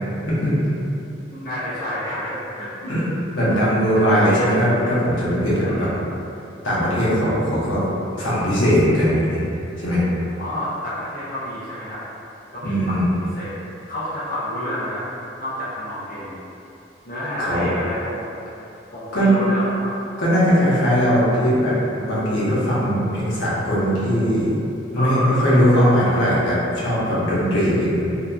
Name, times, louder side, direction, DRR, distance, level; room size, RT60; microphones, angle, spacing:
voice 1, 0.3-0.7 2.8-3.1 3.3-5.9 6.6-7.8 8.2-9.4 9.8-10.0 12.6-13.1 17.4-17.7 19.1-19.4 20.2-21.7 22.0-24.5 24.9-28.2, equal, 85° left, -8 dB, 0.8 m, -19 dB
voice 2, 1.3-3.0 3.5-4.5 5.6-6.1 10.4-12.0 12.5-15.0 15.4-16.4 17.1-18.3 18.9-20.0 24.9-25.9, left 1 dB, 50° left, -12 dB, 0.6 m, -30 dB
2.7 x 2.3 x 2.2 m, 2.7 s
head